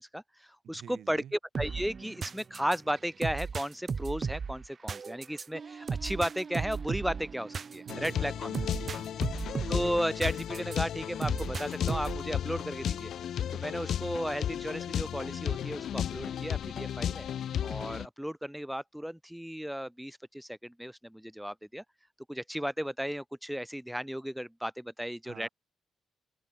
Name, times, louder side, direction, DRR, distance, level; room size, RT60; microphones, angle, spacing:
voice 1, 0.0-8.5 9.7-13.1 13.5-17.3 17.6-21.8 22.3-25.5, equal, ahead, 0.6 m, -35 dB
voice 2, 0.6-1.3 7.9-9.1 25.2-25.5, right 10 dB, 75° right, 3.8 m, -48 dB
sound 1, 1.5-10.8 11.2-12.3, right 5 dB, 40° right, 2.4 m, -36 dB
sound 2, 7.9-18.1, left 9 dB, 70° left, 1.5 m, -34 dB
open air
cardioid pair, 120°, 0 cm